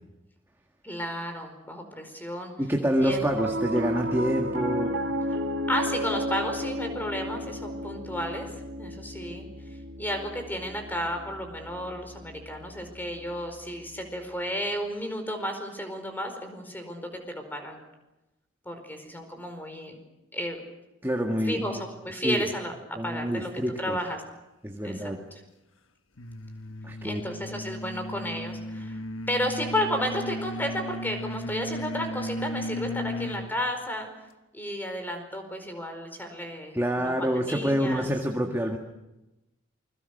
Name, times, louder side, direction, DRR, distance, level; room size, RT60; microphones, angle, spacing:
voice 1, 0.8-2.5 3.0-3.2 5.7-8.5 8.8-9.5 10.0-17.8 18.6-20.0 20.3-20.6 21.4-22.7 23.0-23.5 23.8-24.2 24.8-25.1 27.0-29.0 29.3-34.1 34.5-38.1, equal, 10° left, 6 dB, 4.8 m, -32 dB
voice 2, 2.6-5.0 21.0-21.8 22.2-22.4 23.0-24.0 24.6-25.2 26.8-27.2 36.7-38.8, equal, 10° right, 2 dB, 1.8 m, -27 dB
Piano, 3.0-13.5, right 1 dB, 70° right, 2.5 m, -33 dB
sound 1, 26.2-33.6, left 1 dB, 85° left, 1.3 m, -35 dB
28.0 x 22.5 x 6.6 m, 0.98 s
head